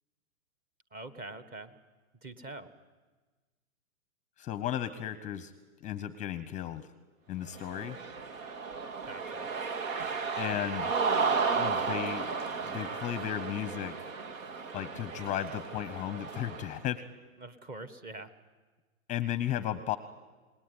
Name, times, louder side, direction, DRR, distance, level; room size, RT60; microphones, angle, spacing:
voice 1, 0.9-1.7 2.2-2.7 9.0-9.5 17.4-18.3, right 2 dB, 20° right, 11 dB, 1.4 m, -44 dB
voice 2, 4.4-5.5 5.8-6.9 7.3-8.0 10.4-10.9 11.6-14.1 14.7-17.0 19.1-20.0, left 11 dB, 15° left, 13 dB, 0.8 m, -35 dB
Cheering, 7.5-16.8, right 5 dB, 70° right, 2.2 m, -33 dB
28.5 x 19.5 x 9.6 m, 1.3 s
hypercardioid pair, 130°, 42 cm